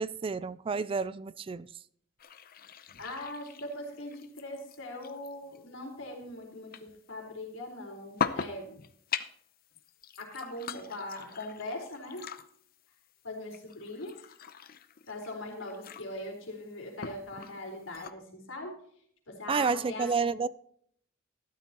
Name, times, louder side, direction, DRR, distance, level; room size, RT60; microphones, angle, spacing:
voice 1, 0.0-1.7 19.5-20.5, right 5 dB, 25° right, 0.3 m, -30 dB
sound 1, 2.2-18.1, left 6 dB, 50° left, 0.7 m, -42 dB
voice 2, 3.0-8.8 10.2-12.2 13.2-14.3 15.1-18.7 19.3-20.3, left 1 dB, 75° left, 4.1 m, -41 dB
13.5 x 12.0 x 2.9 m
head